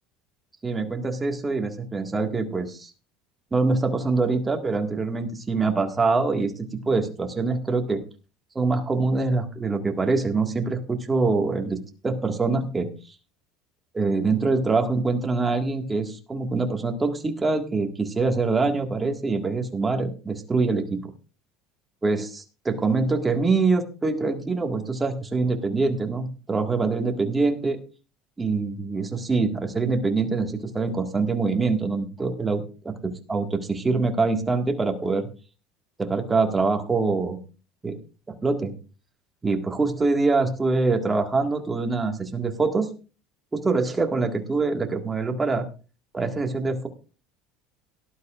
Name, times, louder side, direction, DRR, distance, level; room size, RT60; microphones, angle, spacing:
voice 1, 0.6-2.9 3.5-8.0 8.6-11.8 12.0-12.9 13.9-21.0 22.0-27.8 28.4-35.3 36.0-37.4 37.8-38.0 38.3-38.7 39.4-42.9 43.5-45.7 46.1-46.9, right 3 dB, 15° right, 4 dB, 1.8 m, -24 dB
18.0 x 11.5 x 2.5 m, 0.34 s
cardioid pair, 135°, 0 cm